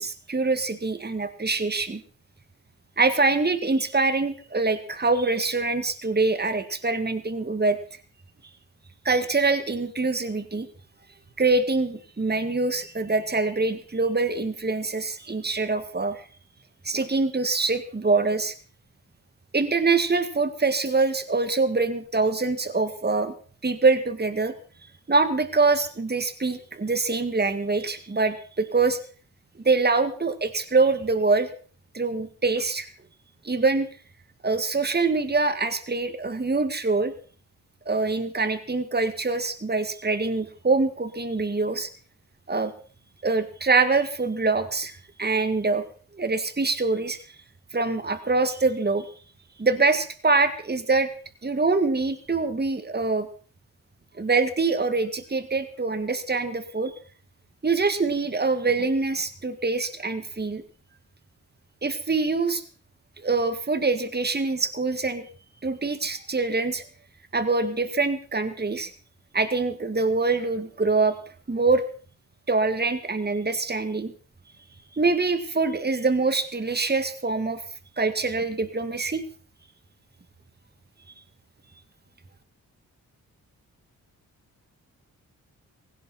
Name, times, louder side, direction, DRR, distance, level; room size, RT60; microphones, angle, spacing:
voice 1, 0.0-2.0 3.0-7.8 9.1-10.7 11.4-16.2 16.8-18.5 19.5-23.3 23.6-24.5 25.1-29.0 29.7-31.5 31.9-32.9 33.4-33.9 34.4-37.1 37.9-41.9 42.5-42.7 43.2-45.8 46.2-47.2 47.7-49.1 49.6-51.1 51.4-53.3 54.2-56.9 57.6-60.6 61.8-62.6 63.2-65.3 65.6-66.8 67.3-68.9 69.3-71.2 71.5-71.8 72.5-74.1 75.0-77.6 78.0-79.2, right 3 dB, 25° right, 10 dB, 2.0 m, -24 dB
17.0 x 16.0 x 4.4 m, 0.42 s
supercardioid pair, 45°, 37 cm